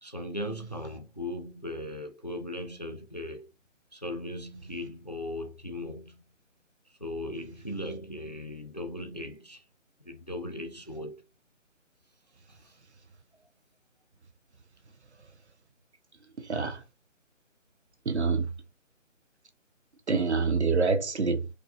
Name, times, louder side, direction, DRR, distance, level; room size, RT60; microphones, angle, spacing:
voice 1, 0.0-3.5 3.9-6.3 7.0-9.6 10.0-11.2 12.5-12.7, left 1 dB, 35° left, 0.4 m, -38 dB
voice 2, 16.2-16.8 18.0-18.5 20.1-21.5, right 4 dB, 60° right, 0.8 m, -27 dB
4.8 x 2.2 x 2.4 m
figure-of-eight pair, 150°, 39 cm